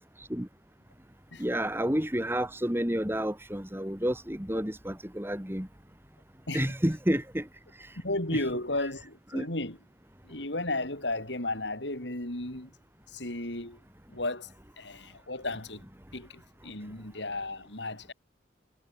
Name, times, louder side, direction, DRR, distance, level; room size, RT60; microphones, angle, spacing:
voice 1, 1.4-5.7 6.5-7.5 9.3-9.5, equal, 10° right, 2.7 m, -30 dB
voice 2, 8.0-9.8 10.2-12.8 13.1-13.8 14.1-15.8 16.1-18.1, left 2 dB, 65° left, 5.5 m, -34 dB
head